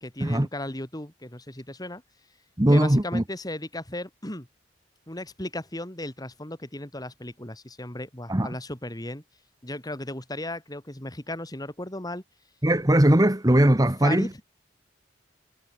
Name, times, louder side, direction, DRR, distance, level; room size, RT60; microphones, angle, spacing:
voice 1, 0.0-2.0 2.7-4.5 5.1-9.2 9.6-12.2 14.0-14.3, left 1 dB, 20° left, 3.0 m, -35 dB
voice 2, 2.6-3.2 8.3-8.6 12.6-14.3, right 1 dB, 20° right, 1.3 m, -20 dB
head